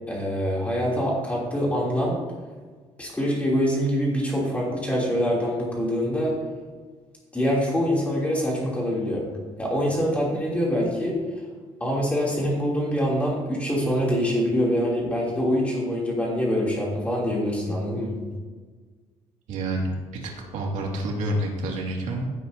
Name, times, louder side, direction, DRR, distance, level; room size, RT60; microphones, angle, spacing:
voice 1, 0.1-2.2 3.0-6.4 7.3-9.3 9.6-11.2 11.8-18.2, equal, 10° left, -4 dB, 3.0 m, -25 dB
voice 2, 19.5-22.3, right 1 dB, 75° right, -1 dB, 2.2 m, -28 dB
16.0 x 8.2 x 2.7 m, 1.4 s
cardioid pair, 165°, 12 cm